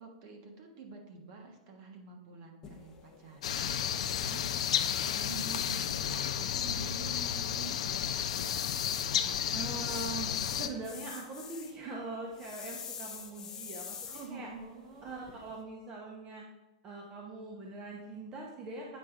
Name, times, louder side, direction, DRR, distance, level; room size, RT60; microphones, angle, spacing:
voice 1, 0.0-4.5 5.0-8.4 14.1-15.1, right 4 dB, 40° right, 3 dB, 1.3 m, -48 dB
sound 1, 2.6-15.6, left 7 dB, 15° left, 0.7 m, -47 dB
sound 2, 3.4-10.7, left 9 dB, 70° left, 0.5 m, -32 dB
voice 2, 9.5-14.5 15.0-16.4 16.8-19.0, right 3 dB, 20° right, -1 dB, 0.9 m, -42 dB
8.5 x 4.7 x 3.7 m, 1.0 s
supercardioid pair, 160°, 3 cm